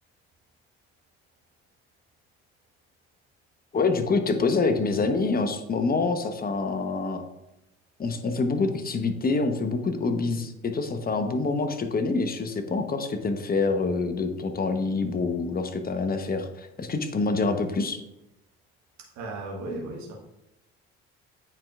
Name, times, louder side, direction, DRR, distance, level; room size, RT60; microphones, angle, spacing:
voice 1, 3.7-7.2 8.0-18.0, left 3 dB, 30° left, 7 dB, 1.0 m, -26 dB
voice 2, 19.0-20.1, right 2 dB, 60° right, -2 dB, 1.4 m, -36 dB
8.8 x 4.5 x 2.5 m, 0.90 s
hypercardioid pair, 60°, 32 cm